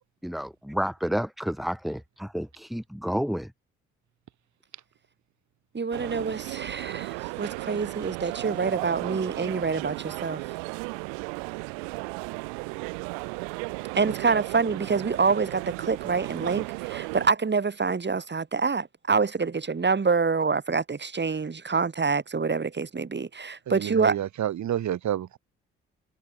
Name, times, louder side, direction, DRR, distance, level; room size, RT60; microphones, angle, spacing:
voice 1, 0.2-3.5, equal, ahead, 5.0 m, -30 dB
voice 2, 5.7-10.4 13.9-24.2, right 5 dB, 35° right, 6.0 m, -26 dB
sound 1, 5.9-17.3, right 40 dB or more, 85° right, 4.4 m, -35 dB
voice 3, 23.7-25.4, right 11 dB, 65° right, 7.1 m, -29 dB
hypercardioid pair, 50°, 31 cm